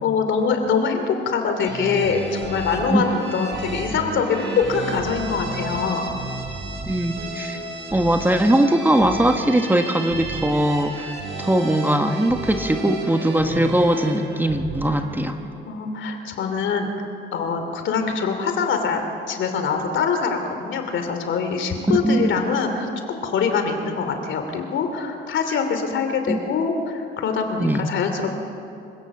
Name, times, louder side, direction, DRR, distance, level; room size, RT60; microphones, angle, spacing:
voice 1, 0.0-6.0 15.6-16.9 17.3-28.4, left 5 dB, 70° left, 6 dB, 2.7 m, -24 dB
sound 1, 1.6-15.5, right 2 dB, 70° right, 3.7 m, -32 dB
voice 2, 6.9-7.6 7.9-11.1 11.4-15.4 22.0-22.3 26.3-26.4 27.6-27.8, right 1 dB, 10° right, 6 dB, 1.4 m, -20 dB
26.5 x 16.0 x 7.1 m, 2.7 s
cardioid pair, 90°, 20 cm